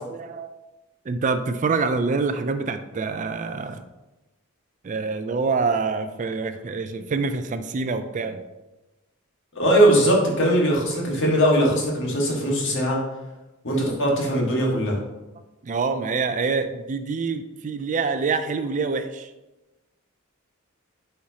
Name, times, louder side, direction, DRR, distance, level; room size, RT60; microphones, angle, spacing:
voice 1, 0.1-0.5 1.1-3.8 4.8-8.4 15.6-19.3, right 4 dB, 35° right, 9 dB, 0.4 m, -26 dB
voice 2, 9.5-13.0 13.6-15.0, right 1 dB, 60° left, -2 dB, 1.7 m, -20 dB
8.4 x 4.5 x 2.8 m, 1.0 s
head